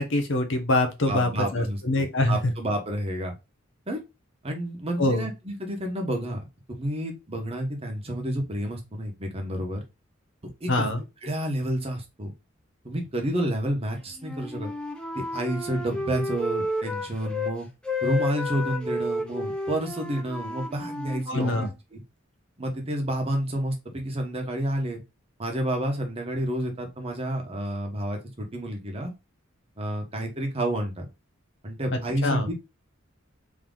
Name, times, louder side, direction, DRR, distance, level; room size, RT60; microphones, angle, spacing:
voice 1, 0.0-2.5 5.0-5.3 10.7-11.0 21.3-21.7 31.9-32.5, left 2 dB, 65° left, 0.9 m, -24 dB
voice 2, 1.1-3.3 3.9-4.0 4.4-9.8 10.6-10.9 11.2-12.3 12.8-14.7 15.1-17.7 18.0-21.6 21.9-22.0 22.6-25.0 25.4-29.1 29.8-31.1 31.6-32.5, right 1 dB, 30° right, 1.1 m, -30 dB
Wind instrument woodwind instrument, 14.1-17.5 17.8-21.7, left 2 dB, 5° left, 0.7 m, -32 dB
3.6 x 3.0 x 3.8 m
head